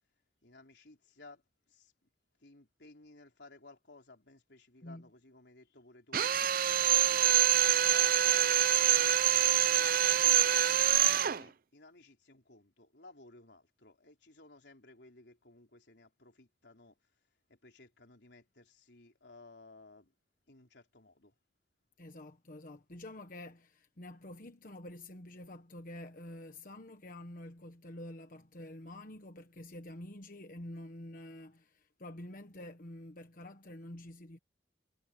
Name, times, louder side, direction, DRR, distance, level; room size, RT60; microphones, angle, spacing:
voice 1, 0.4-1.9 2.4-6.2 7.0-7.4 7.7-8.5 10.0-17.0 17.5-20.1 20.5-21.3, left 2 dB, 70° left, 4.0 m, -57 dB
Drill, 6.1-11.4, right 12 dB, 50° right, 0.5 m, -26 dB
voice 2, 22.0-34.4, left 1 dB, 50° left, 1.2 m, -48 dB
head